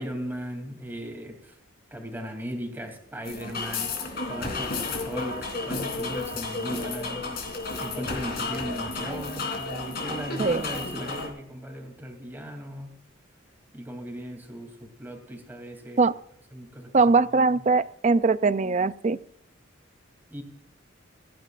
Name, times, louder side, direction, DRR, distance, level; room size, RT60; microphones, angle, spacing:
voice 1, 0.0-1.6 1.9-12.9 13.7-16.0 16.5-16.9 20.3-20.4, equal, 10° right, 3 dB, 2.9 m, -37 dB
sound 1, 3.2-11.3, left 3 dB, 50° left, 3.5 m, -32 dB
voice 2, 16.9-19.2, right 4 dB, 35° right, 15 dB, 0.4 m, -21 dB
28.5 x 10.5 x 2.5 m, 0.73 s
head